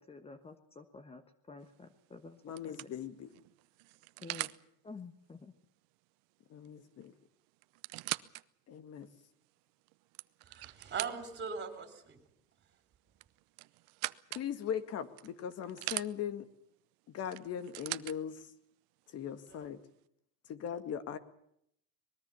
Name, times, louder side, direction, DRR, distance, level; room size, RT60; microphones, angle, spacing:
voice 1, 0.0-2.8 4.2-4.5 4.8-5.5, left 4 dB, 15° left, 10 dB, 1.3 m, -50 dB
sound 1, 1.7-2.0 2.6-4.6 6.7-6.8 7.0-7.1 7.6-8.4 9.0-9.1 9.9-11.5 13.2-14.5 15.2-16.1 17.3-18.2 19.1-19.2, right 25 dB, 75° right, 0.8 m, -41 dB
voice 2, 2.4-3.3 6.5-7.1 8.7-9.1 14.3-16.5 17.1-18.4 19.1-19.8 20.5-21.2, left 8 dB, 45° left, 12 dB, 2.1 m, -39 dB
voice 3, 10.4-12.2 19.5-19.7, right 6 dB, 30° right, 9 dB, 4.1 m, -41 dB
23.5 x 21.0 x 7.1 m, 0.73 s
cardioid pair, 140°, 36 cm